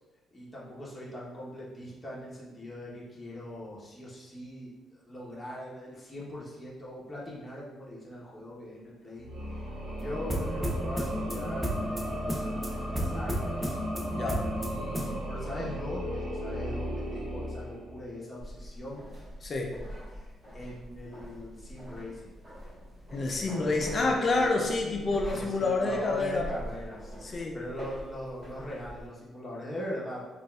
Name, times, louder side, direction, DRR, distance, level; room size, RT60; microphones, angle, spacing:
voice 1, 0.3-9.3 10.0-13.8 14.6-19.1 20.1-22.3 23.5-24.7 25.2-27.2 27.5-30.2, left 1 dB, 20° left, -7 dB, 0.9 m, -41 dB
sound 1, 9.2-18.2, equal, 75° right, 1.0 m, -36 dB
sound 2, 10.0-15.1, equal, 5° right, 0.6 m, -33 dB
voice 2, 14.1-14.5 19.4-19.8 23.1-26.5 27.2-27.6, left 3 dB, 45° left, 1 dB, 0.4 m, -28 dB
sound 3, 18.4-29.1, equal, 35° right, 1.4 m, -44 dB
3.8 x 2.4 x 2.3 m, 1.2 s
cardioid pair, 90°, 0 cm